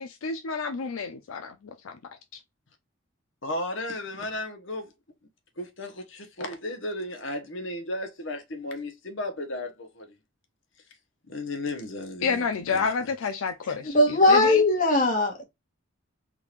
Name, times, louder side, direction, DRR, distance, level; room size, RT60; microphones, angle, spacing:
voice 1, 0.0-2.0 2.3-2.4 12.2-14.0 14.3-14.6, left 5 dB, 90° left, 0.5 m, -29 dB
voice 2, 3.4-4.9 5.6-10.2 11.3-13.1, left 1 dB, 65° left, 1.0 m, -34 dB
voice 3, 13.8-15.4, left 2 dB, 40° left, 1.3 m, -20 dB
3.7 x 2.4 x 3.0 m
head